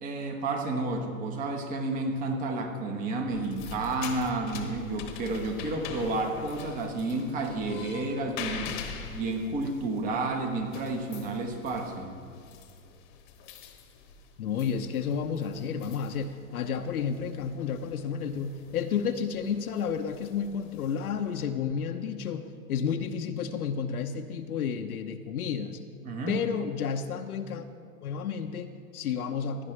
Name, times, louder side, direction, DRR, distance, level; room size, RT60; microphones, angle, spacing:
voice 1, 0.0-8.8 9.1-12.1 26.0-26.4, right 2 dB, 20° right, 4 dB, 1.1 m, -31 dB
sound 1, 3.3-21.4, left 7 dB, 35° left, 1.1 m, -44 dB
voice 2, 14.4-25.8 26.3-27.7 28.0-29.7, left 7 dB, 80° left, 6 dB, 0.8 m, -31 dB
16.0 x 10.5 x 3.2 m, 2.2 s
hypercardioid pair, 145°, 44 cm